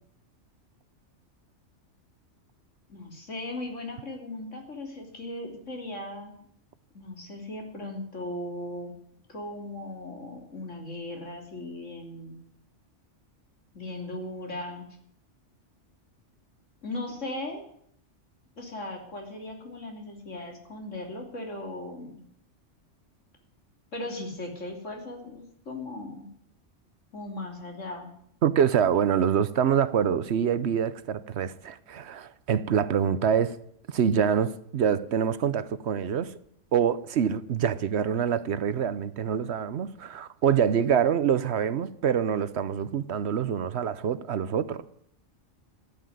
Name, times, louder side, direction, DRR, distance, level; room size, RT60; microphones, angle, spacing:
voice 1, 2.9-6.4 6.9-8.9 9.3-12.4 13.7-14.9 16.8-17.6 18.6-22.2 23.9-26.3 27.1-28.1, left 1 dB, 90° left, 3.4 m, -37 dB
voice 2, 28.4-33.6 33.9-36.3 36.7-44.8, right 8 dB, 65° right, 1.0 m, -25 dB
14.0 x 8.7 x 9.3 m
omnidirectional pair, 1.2 m